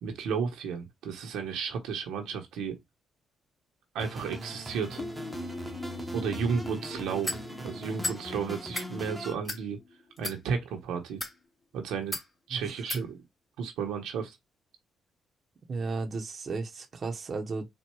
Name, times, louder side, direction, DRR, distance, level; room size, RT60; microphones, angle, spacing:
voice 1, 0.0-2.8 3.9-5.0 6.1-7.3 7.6-9.8 10.2-11.2 11.7-12.2 12.5-13.2 13.6-14.4, right 6 dB, 85° right, 1.2 m, -33 dB
sound 1, 4.0-9.3, right 1 dB, 10° right, 1.2 m, -41 dB
sound 2, 5.0-10.5, left 3 dB, 45° left, 0.8 m, -43 dB
sound 3, 7.2-7.4 8.0-8.2 8.6-8.9 9.4-9.6 10.2-10.4 11.1-11.4 12.1-12.3 12.9-13.0, left 2 dB, 20° left, 2.7 m, -33 dB
voice 2, 15.7-17.7, right 3 dB, 45° right, 1.0 m, -34 dB
4.4 x 2.6 x 4.6 m
cardioid pair, 90°, 0 cm